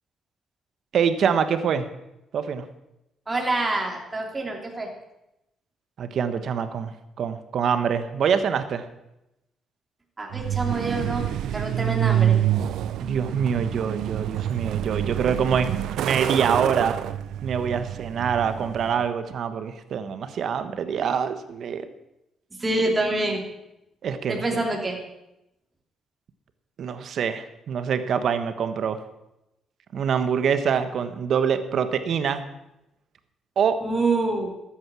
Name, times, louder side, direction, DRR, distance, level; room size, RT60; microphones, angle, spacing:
voice 1, 0.9-1.9 2.3-2.6 6.0-6.9 7.2-8.9 13.0-15.7 16.0-17.0 17.4-21.9 24.0-24.6 26.8-29.0 29.9-32.4 33.6-33.8, right 7 dB, 65° right, 10 dB, 1.2 m, -25 dB
voice 2, 3.3-4.9 10.2-11.2 11.5-12.4 22.6-23.4 24.3-25.0 33.8-34.5, right 2 dB, 20° right, 0 dB, 2.9 m, -26 dB
Truck, 10.3-19.0, right 11 dB, 80° right, 0.4 m, -27 dB
13.0 x 8.9 x 6.3 m, 0.89 s
cardioid pair, 90°, 0 cm